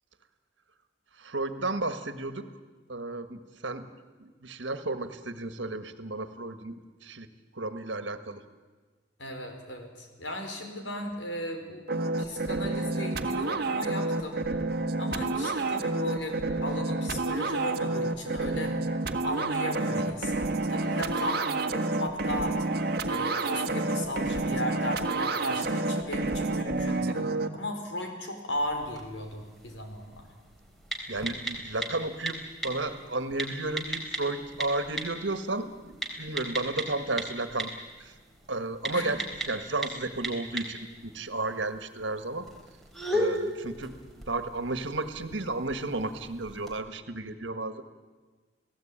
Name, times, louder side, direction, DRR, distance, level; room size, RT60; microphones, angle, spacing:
voice 1, 1.2-2.5 2.9-3.9 4.2-6.7 7.0-7.3 7.5-8.4 31.1-37.7 38.0-38.1 38.5-42.5 43.1-43.9 44.3-47.8, right 2 dB, 75° right, 10 dB, 1.8 m, -33 dB
voice 2, 9.2-11.9 12.2-14.4 15.0-18.7 19.2-22.6 23.1-30.3 38.9-39.1, left 1 dB, 75° left, 4 dB, 4.8 m, -36 dB
sound 1, 11.9-27.5, right 2 dB, 55° right, 1.5 m, -29 dB
sound 2, 28.5-46.8, equal, ahead, 3.7 m, -38 dB
29.5 x 17.5 x 8.9 m, 1.4 s
head